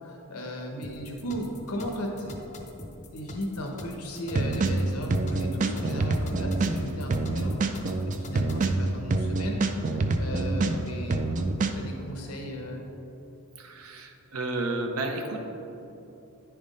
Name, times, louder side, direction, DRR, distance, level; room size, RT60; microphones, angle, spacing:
voice 1, 0.0-2.4 3.1-11.5 11.7-12.9, equal, 90° left, 1 dB, 1.1 m, -36 dB
sound 1, 0.8-8.7, left 1 dB, 35° left, 0.6 m, -43 dB
sound 2, 4.3-6.8 7.1-10.8 11.1-11.7, right 3 dB, 35° right, 0.3 m, -26 dB
voice 2, 13.6-15.4, right 2 dB, 70° right, 4 dB, 0.7 m, -32 dB
9.9 x 3.5 x 5.2 m, 3.0 s
head